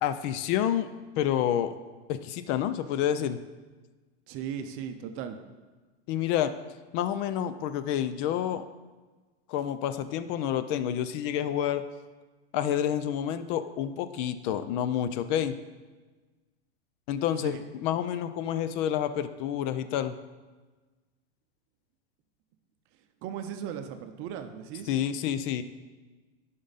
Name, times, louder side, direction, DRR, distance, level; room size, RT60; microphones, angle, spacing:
voice 1, 0.0-0.9 1.2-1.7 2.1-3.4 6.1-6.5 6.9-8.6 9.5-11.8 12.5-15.6 17.1-20.2 24.9-25.6, left 10 dB, 45° left, 12 dB, 0.6 m, -29 dB
voice 2, 4.3-5.4 17.4-17.6 23.2-24.9, right 8 dB, 40° right, 7 dB, 0.7 m, -37 dB
10.0 x 5.4 x 4.1 m, 1.3 s
supercardioid pair, 130°, 34 cm